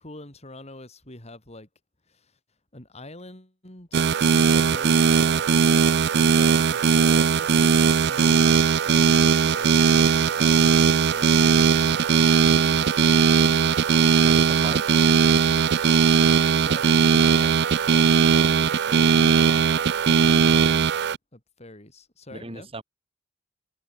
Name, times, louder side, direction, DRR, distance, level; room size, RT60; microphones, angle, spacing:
voice 1, 0.0-1.7 2.1-2.4 2.7-4.0 4.4-5.0 5.2-5.8 6.2-8.5 8.8-13.2 16.6-17.5 17.9-20.9 21.3-22.7, left 1 dB, 35° left, 4.7 m, -44 dB
sound 1, 3.9-21.2, right 6 dB, 65° right, 0.5 m, -19 dB
voice 2, 14.2-14.9 22.3-22.8, right 2 dB, 30° right, 2.2 m, -37 dB
head